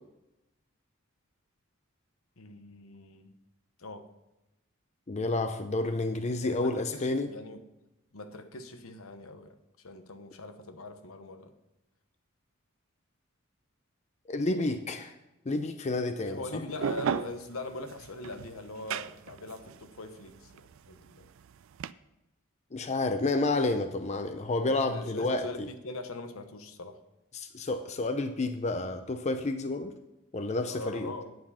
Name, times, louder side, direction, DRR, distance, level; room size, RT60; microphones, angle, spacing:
voice 1, 2.4-3.3 3.8-4.0 6.4-7.6 8.1-11.5 16.1-21.3 24.6-27.0 30.7-31.3, left 2 dB, 80° left, 8 dB, 1.0 m, -42 dB
voice 2, 5.1-7.3 14.3-15.1 15.5-16.6 22.7-25.7 27.3-29.9 30.3-31.1, left 2 dB, 30° left, 8 dB, 0.5 m, -30 dB
sound 1, 16.7-21.9, right 8 dB, 70° right, 0.3 m, -35 dB
9.3 x 7.3 x 5.6 m, 0.94 s
head